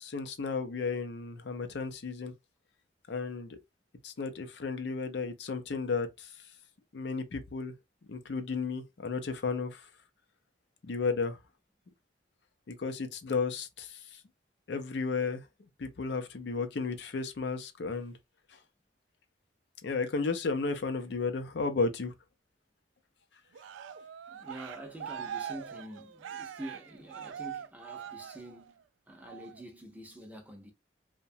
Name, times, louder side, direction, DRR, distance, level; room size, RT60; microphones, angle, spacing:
voice 1, 0.0-2.3 3.1-3.6 4.0-6.3 6.9-7.7 8.1-9.8 10.9-11.4 12.7-13.9 14.7-15.4 15.8-18.1 19.8-22.1, left 4 dB, 65° left, 0.5 m, -33 dB
Cheering, 23.5-28.8 29.2-29.6, right 9 dB, 85° right, 0.3 m, -42 dB
voice 2, 24.3-30.7, right 1 dB, 10° right, 0.5 m, -46 dB
2.8 x 2.1 x 2.6 m
head